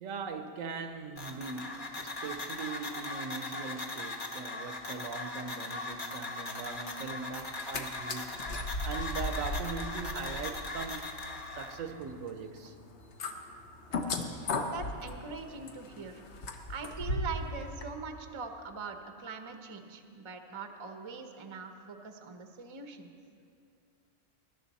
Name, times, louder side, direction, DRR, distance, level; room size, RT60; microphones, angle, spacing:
voice 1, 0.0-8.4 8.8-11.1 11.5-12.7, right 5 dB, 75° right, 1.2 m, -40 dB
sound 1, 1.2-11.8, left 2 dB, 40° left, 1.2 m, -39 dB
sound 2, 7.4-7.8 8.1-17.5 17.8-17.9, left 2 dB, 60° left, 1.2 m, -37 dB
voice 2, 14.7-16.2 16.7-23.1, right 4 dB, 25° right, 0.7 m, -42 dB
21.0 x 11.0 x 4.1 m
omnidirectional pair, 1.4 m